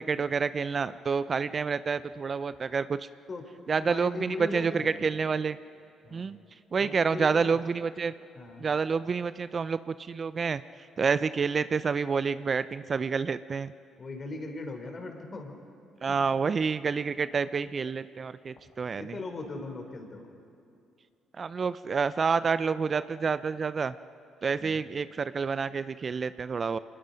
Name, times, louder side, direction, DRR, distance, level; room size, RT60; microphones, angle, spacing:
voice 1, 0.0-3.0 3.7-5.6 6.1-6.4 6.7-8.1 8.6-10.6 11.0-13.7 16.0-19.1 21.4-23.9 24.4-26.8, right 5 dB, 45° right, 15 dB, 0.5 m, -28 dB
voice 2, 3.8-5.0 6.0-6.4 6.8-7.6 8.4-8.7 14.0-15.6 16.1-16.2 19.0-20.3 24.6-24.8, left 2 dB, 40° left, 4 dB, 3.6 m, -39 dB
26.5 x 20.0 x 5.2 m, 2.6 s
hypercardioid pair, 50°, 0 cm